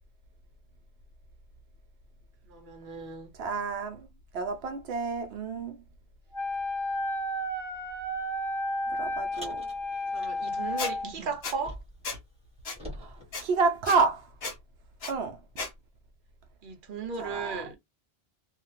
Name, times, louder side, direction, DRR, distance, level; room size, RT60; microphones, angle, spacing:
voice 1, 2.5-3.3 10.1-11.8 16.6-17.7, right 5 dB, 55° right, 0.9 m, -36 dB
voice 2, 3.4-4.1 4.3-5.8 8.9-9.7 11.0-11.3 12.9-14.3 15.1-15.4 17.2-17.6, right 4 dB, 85° right, 0.9 m, -29 dB
Wind instrument woodwind instrument, 6.3-11.1, left 1 dB, 20° left, 0.7 m, -32 dB
Car, 9.3-12.1 12.4-14.2, equal, 5° right, 1.3 m, -47 dB
Squeak, 10.8-10.9 11.4-11.6 12.0-12.2 12.7-12.8 13.3-13.4 13.9-14.0 14.4-14.6 15.0-15.1 15.6-15.7, left 3 dB, 75° left, 1.2 m, -34 dB
2.9 x 2.4 x 2.8 m
omnidirectional pair, 1.1 m